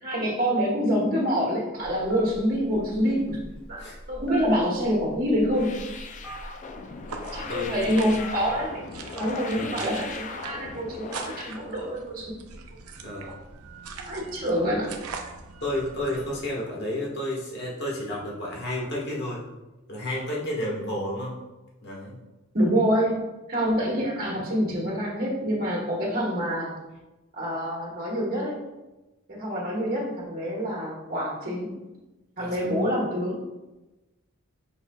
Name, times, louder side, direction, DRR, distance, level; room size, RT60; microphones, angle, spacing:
voice 1, 0.0-3.4 3.7-5.8 7.3-12.6 13.2-13.4 14.1-14.9 22.5-23.2 23.5-26.7 27.4-28.6 29.3-31.7 32.4-33.4, equal, 40° right, -3 dB, 1.2 m, -26 dB
Telephone, 1.8-8.6, equal, 5° left, 1.1 m, -43 dB
sound 1, 5.5-11.6, left 4 dB, 35° left, 0.3 m, -39 dB
sound 2, 7.1-16.5, right 5 dB, 85° right, 0.5 m, -42 dB
voice 2, 13.0-13.3 15.6-19.4 19.9-21.3 21.8-22.1 32.4-32.7, left 1 dB, 50° left, -4 dB, 1.4 m, -31 dB
5.7 x 4.0 x 2.2 m, 1.1 s
head